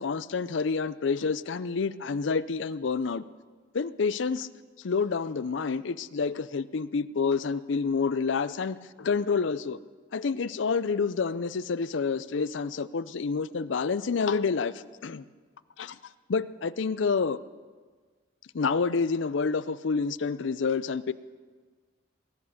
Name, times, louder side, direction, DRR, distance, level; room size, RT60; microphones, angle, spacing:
voice 1, 0.0-3.2 3.7-4.5 4.8-9.8 10.1-15.3 15.8-16.0 16.3-17.4 18.5-21.1, left 5 dB, 70° left, 16 dB, 0.5 m, -28 dB
20.0 x 11.0 x 6.5 m, 1.5 s
head